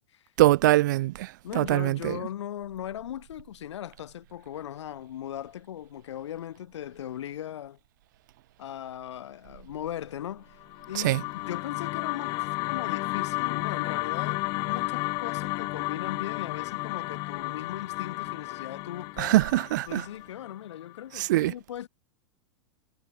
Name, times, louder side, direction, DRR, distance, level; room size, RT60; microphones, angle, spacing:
voice 1, 0.4-2.2 11.0-11.2 19.2-20.0 21.2-21.5, right 17 dB, 45° right, 0.4 m, -23 dB
voice 2, 1.4-7.8 8.6-19.4 19.9-21.9, left 11 dB, 80° left, 5.4 m, -38 dB
sound 1, 10.6-20.9, left 24 dB, 25° left, 1.4 m, -32 dB
supercardioid pair, 175°, 15 cm